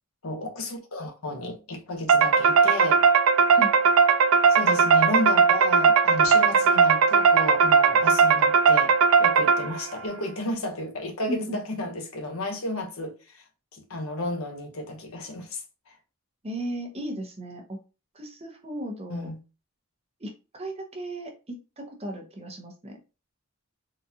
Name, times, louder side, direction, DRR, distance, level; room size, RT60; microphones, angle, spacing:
voice 1, 0.2-3.1 4.5-13.4 13.7-16.0 19.1-19.4, left 1 dB, 75° left, 0.9 m, -33 dB
sound 1, 2.1-9.9, right 5 dB, 70° right, 0.3 m, -19 dB
voice 2, 16.4-17.8 18.1-19.3 20.2-23.0, right 1 dB, 30° right, 0.7 m, -35 dB
3.8 x 2.4 x 2.7 m
head